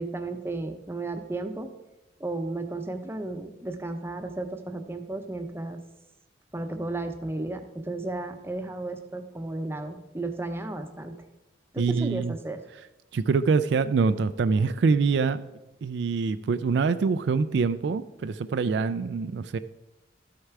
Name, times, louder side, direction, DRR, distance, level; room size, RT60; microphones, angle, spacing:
voice 1, 0.0-1.7 2.2-5.8 6.5-11.2 11.7-12.6, right 2 dB, 15° right, 6 dB, 0.7 m, -34 dB
voice 2, 11.8-12.3 13.1-15.4 15.8-19.6, right 4 dB, 65° right, 12 dB, 0.3 m, -25 dB
12.5 x 6.5 x 4.7 m, 0.99 s
head